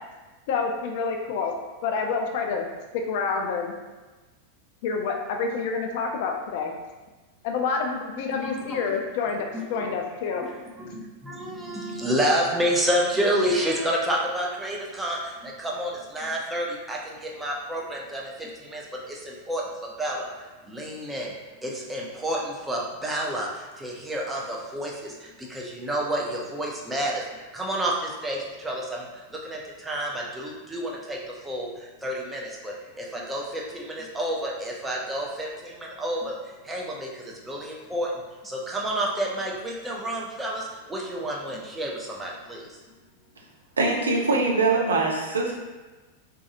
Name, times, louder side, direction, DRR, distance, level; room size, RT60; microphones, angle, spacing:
voice 1, 0.5-1.5 1.8-2.7 3.1-3.7 4.8-6.7 7.4-10.4, left 5 dB, 50° left, 2 dB, 0.3 m, -28 dB
voice 2, 8.3-9.0 9.5-9.9 10.3-10.5 10.8-20.3 20.6-21.3 21.6-36.4 36.6-38.1 38.4-42.7, right 1 dB, 10° right, -3 dB, 0.5 m, -30 dB
voice 3, 43.8-45.5, right 3 dB, 75° right, -1 dB, 0.4 m, -23 dB
2.6 x 2.3 x 2.7 m, 1.2 s
figure-of-eight pair, 90°, 0 cm